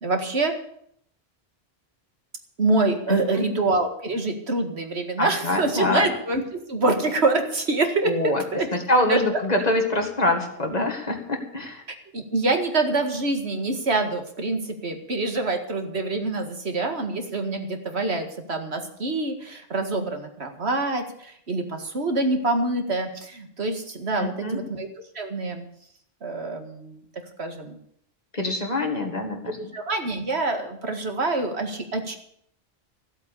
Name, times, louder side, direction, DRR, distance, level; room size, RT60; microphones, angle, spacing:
voice 1, 0.0-0.5 2.6-6.4 6.7-8.7 9.1-9.2 12.1-24.9 25.2-25.7 26.2-27.0 27.4-27.8 29.7-32.2, right 2 dB, 90° right, 5 dB, 2.2 m, -26 dB
voice 2, 3.1-3.5 5.2-6.1 8.1-8.4 8.7-11.8 24.2-24.6 28.3-29.7, left 1 dB, 40° left, 4 dB, 2.1 m, -25 dB
15.0 x 8.2 x 8.4 m, 0.68 s
omnidirectional pair, 1.1 m